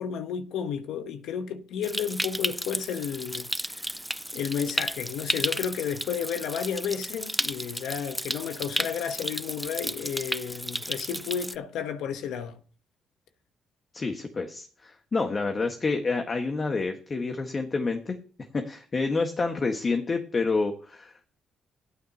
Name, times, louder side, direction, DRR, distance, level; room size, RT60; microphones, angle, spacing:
voice 1, 0.0-3.9 4.3-12.6, left 7 dB, 85° left, 1.0 m, -32 dB
Stream, 1.8-11.6, equal, 5° right, 0.4 m, -33 dB
voice 2, 13.9-18.2 18.5-21.4, left 3 dB, 35° left, 1.6 m, -28 dB
15.5 x 9.3 x 2.9 m
cardioid pair, 90°, 0 cm